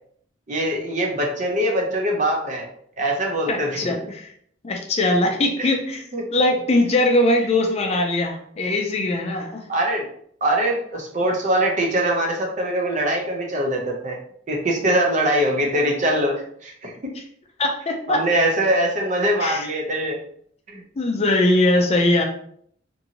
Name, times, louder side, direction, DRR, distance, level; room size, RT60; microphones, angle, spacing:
voice 1, 0.5-2.7 3.0-3.8 5.6-5.8 6.1-6.2 9.7-10.1 10.4-14.2 14.5-17.1 18.1-20.2 20.7-20.8, right 1 dB, 40° right, 1 dB, 0.6 m, -22 dB
voice 2, 3.5-4.3 4.6-6.0 6.3-9.7 17.6-18.2 19.4-19.7 21.0-22.2, left 1 dB, 35° left, 3 dB, 0.4 m, -21 dB
2.7 x 2.6 x 2.8 m, 0.64 s
head